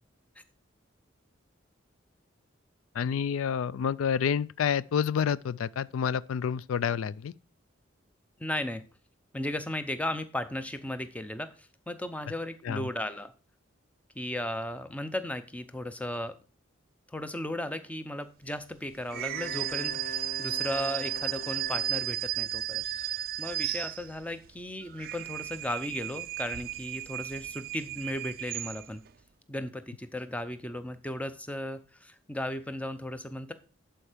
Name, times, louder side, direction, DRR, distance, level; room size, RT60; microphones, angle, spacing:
voice 1, 2.9-7.3 12.6-12.9, left 7 dB, 85° left, 0.3 m, -29 dB
voice 2, 8.4-8.8 9.3-13.3 14.2-16.3 17.1-29.0 29.5-33.5, left 1 dB, 5° left, 0.6 m, -36 dB
Wind instrument woodwind instrument, 19.1-22.3, left 4 dB, 45° left, 0.9 m, -44 dB
sound 1, 19.1-24.4 24.8-29.1, right 14 dB, 45° right, 0.3 m, -34 dB
11.5 x 4.5 x 5.0 m
head